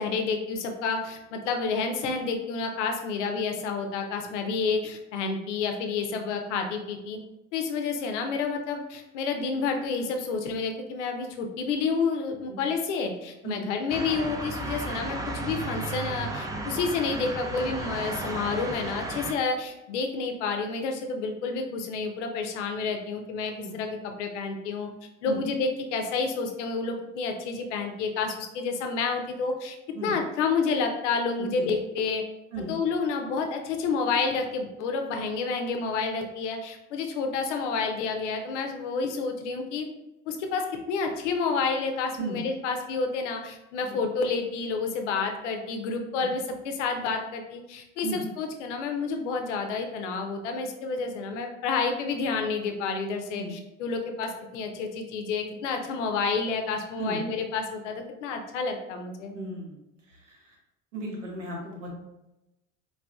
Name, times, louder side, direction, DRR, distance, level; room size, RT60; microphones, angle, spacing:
voice 1, 0.0-7.2 7.5-24.9 25.2-32.2 32.7-39.9 40.3-59.4, left 4 dB, 70° left, 4 dB, 0.6 m, -29 dB
sound 1, 13.9-19.3, right 2 dB, 10° right, 0.4 m, -34 dB
voice 2, 31.4-31.7 32.5-32.7 42.2-42.4 43.8-44.0 46.2-46.3 48.0-48.2 53.3-53.5 57.0-57.2 59.3-59.8 60.1-60.6 60.9-61.9, right 2 dB, 80° right, -2 dB, 1.0 m, -36 dB
4.6 x 2.4 x 2.3 m, 0.95 s
figure-of-eight pair, 65°, 37 cm